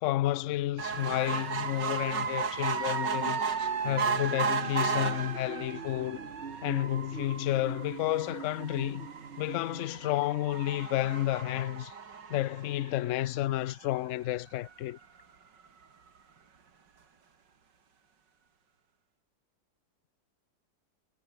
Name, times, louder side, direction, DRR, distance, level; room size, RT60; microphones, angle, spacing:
voice 1, 0.0-3.4 3.8-6.2 6.6-9.1 9.4-11.9 12.3-15.0, left 15 dB, 70° left, 0.7 m, -31 dB
sound 1, 0.8-13.4 14.0-14.1 14.3-14.4 14.7-14.8, right 6 dB, 85° right, 2.9 m, -34 dB
sound 2, 3.1-10.2, right 5 dB, 40° right, 1.5 m, -45 dB
omnidirectional pair, 1.9 m